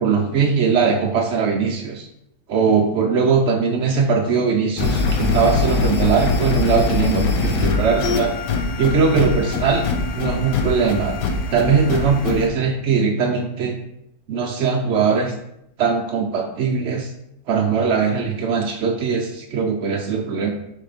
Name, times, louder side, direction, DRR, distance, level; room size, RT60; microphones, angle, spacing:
voice 1, 0.0-2.1 2.5-8.3 8.8-9.9 10.1-11.2 11.5-13.8 14.3-15.3 15.8-17.1 17.5-20.5, right 5 dB, 75° right, 2 dB, 0.6 m, -20 dB
sound 1, 4.8-12.5, left 3 dB, 80° left, 1.5 m, -22 dB
6.5 x 3.8 x 5.0 m, 0.81 s
omnidirectional pair, 1.9 m